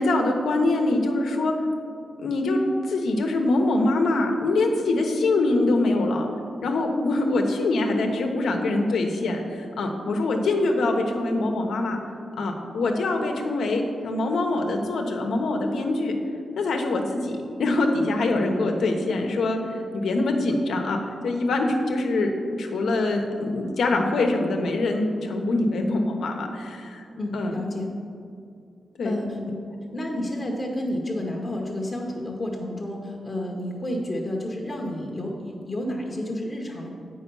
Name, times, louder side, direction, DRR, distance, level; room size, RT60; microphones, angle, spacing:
voice 1, 0.0-1.5 2.2-2.6 2.9-6.3 6.6-12.0 12.4-16.1 16.6-17.3 17.6-22.3 22.6-27.1 27.3-27.5 29.0-29.2, left 2 dB, 85° left, 3 dB, 0.9 m, -24 dB
voice 2, 27.1-27.9 29.0-29.4 29.9-36.9, left 1 dB, 30° left, 0 dB, 0.9 m, -30 dB
8.1 x 5.5 x 5.4 m, 2.5 s
wide cardioid pair, 130°, 0 cm